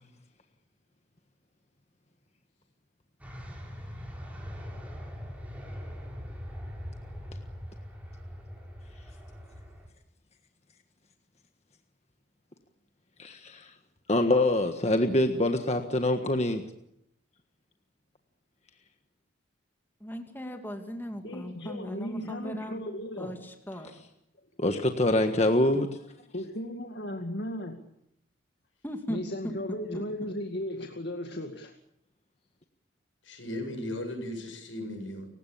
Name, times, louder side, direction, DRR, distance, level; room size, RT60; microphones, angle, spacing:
sound 1, 3.2-9.9, equal, 10° right, 6.4 m, -41 dB
voice 1, 13.2-13.7 14.1-16.7 24.6-26.0, left 1 dB, 35° left, 6 dB, 1.6 m, -25 dB
voice 2, 20.0-22.8 23.2-23.9 28.8-30.0, equal, 10° left, 4 dB, 2.5 m, -38 dB
voice 3, 21.2-23.5 26.3-27.8 29.1-31.7, left 1 dB, 60° left, 4 dB, 2.2 m, -36 dB
voice 4, 33.2-35.3, left 1 dB, 90° left, 5 dB, 7.9 m, -37 dB
29.5 x 17.0 x 8.7 m, 0.79 s
head